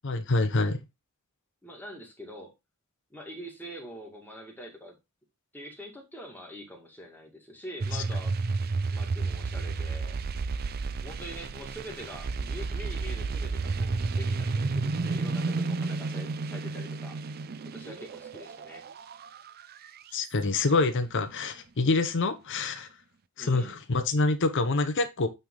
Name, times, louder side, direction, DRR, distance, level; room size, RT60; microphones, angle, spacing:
voice 1, 0.0-0.8 7.9-8.0 20.1-22.9 23.4-25.3, left 3 dB, 55° left, 0.8 m, -26 dB
voice 2, 1.6-2.5 3.1-5.0 5.5-8.3 8.9-10.2 11.0-17.2 17.6-18.8 23.4-23.8, equal, 10° left, 2.0 m, -44 dB
sound 1, 7.8-20.2, right 3 dB, 45° right, 0.5 m, -31 dB
9.0 x 3.5 x 3.7 m
head